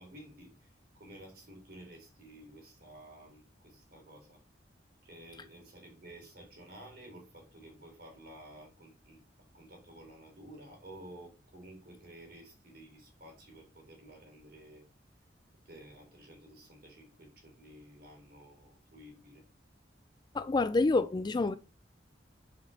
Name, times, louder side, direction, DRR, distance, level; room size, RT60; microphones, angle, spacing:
voice 1, 0.0-4.4 5.0-9.2 9.5-14.8 15.6-19.4, right 1 dB, 55° right, 3.3 m, -53 dB
voice 2, 20.3-21.6, left 3 dB, 25° left, 0.3 m, -27 dB
5.2 x 5.1 x 4.1 m
head